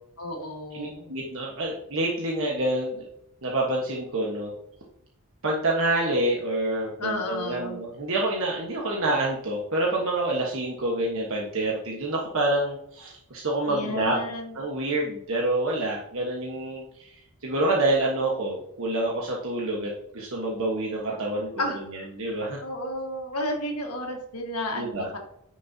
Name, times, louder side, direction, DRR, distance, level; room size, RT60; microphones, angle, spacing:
voice 1, 0.2-1.1 7.0-7.8 13.7-14.5 21.6-21.8 22.6-25.2, left 1 dB, 80° left, 2 dB, 1.7 m, -32 dB
voice 2, 0.7-3.1 3.4-4.5 5.4-14.2 14.5-17.2 17.4-21.6 21.9-22.6 24.7-25.1, right 2 dB, 65° right, -2 dB, 1.4 m, -27 dB
9.6 x 6.4 x 2.8 m, 0.75 s
head